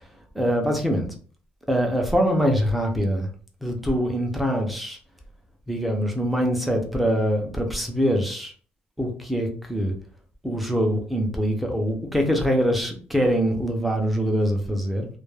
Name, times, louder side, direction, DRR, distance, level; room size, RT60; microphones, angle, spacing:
voice 1, 0.3-1.1 1.7-3.3 3.6-5.0 5.7-8.5 9.0-9.9 10.4-15.1, equal, ahead, 2 dB, 0.5 m, -23 dB
2.2 x 2.1 x 3.1 m, 0.42 s
cardioid pair, 170°, 4 cm